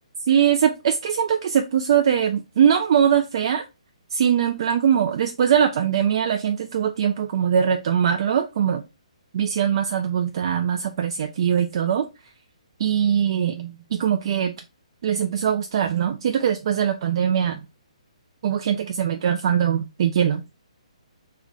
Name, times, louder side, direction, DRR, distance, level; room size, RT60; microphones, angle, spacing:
voice 1, 0.3-3.6 4.1-8.8 9.3-12.1 12.8-14.5 15.0-17.6 18.4-20.4, right 8 dB, 50° right, 6 dB, 0.3 m, -21 dB
2.5 x 2.1 x 3.6 m, 0.26 s
figure-of-eight pair, 140°, 4 cm